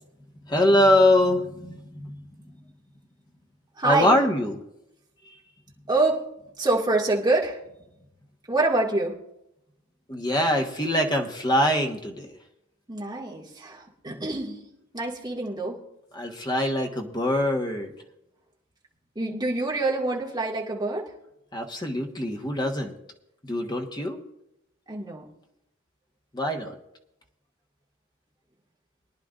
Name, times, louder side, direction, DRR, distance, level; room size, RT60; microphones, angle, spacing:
voice 1, 0.5-2.1 3.8-4.6 5.2-5.4 10.1-12.4 16.1-17.9 21.5-22.9 23.4-24.2 26.3-26.8, left 1 dB, 20° left, 2 dB, 1.3 m, -23 dB
voice 2, 3.8-4.2 5.9-6.2 6.6-7.6 8.5-9.1 12.9-14.6 14.9-15.8 19.2-21.1 24.9-25.3, right 2 dB, 20° right, -4 dB, 2.2 m, -26 dB
23.0 x 10.5 x 2.6 m, 0.82 s
head